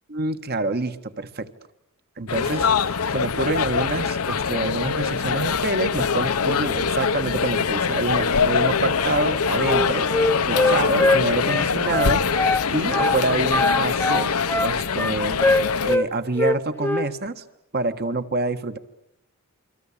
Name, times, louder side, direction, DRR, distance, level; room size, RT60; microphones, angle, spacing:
voice 1, 0.1-1.5 2.2-10.1 10.5-12.2 12.7-14.3 14.6-15.4 15.8-17.4 17.7-18.8, right 2 dB, 45° right, 9 dB, 1.6 m, -27 dB
sound 1, 2.3-16.0, left 5 dB, 80° left, 1.0 m, -23 dB
Wind instrument woodwind instrument, 9.7-12.7 12.9-13.2 13.5-16.1 16.4-17.1, left 2 dB, 10° left, 1.1 m, -22 dB
29.0 x 24.0 x 8.7 m, 0.82 s
head